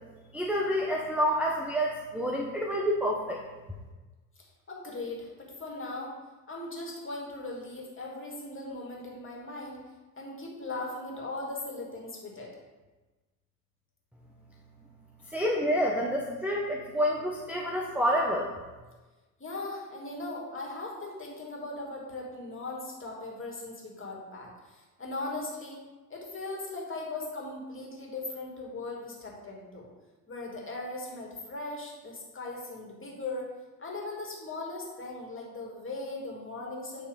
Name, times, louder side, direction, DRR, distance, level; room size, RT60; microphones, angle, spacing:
voice 1, 0.3-3.4 15.3-18.5, equal, 5° right, -1 dB, 0.9 m, -28 dB
voice 2, 4.7-6.1 6.5-9.8 10.2-12.5 19.4-25.8 26.1-29.9 30.3-33.5 33.8-37.1, left 2 dB, 25° left, -2 dB, 2.5 m, -39 dB
9.1 x 3.5 x 5.1 m, 1.2 s
hypercardioid pair, 60°, 48 cm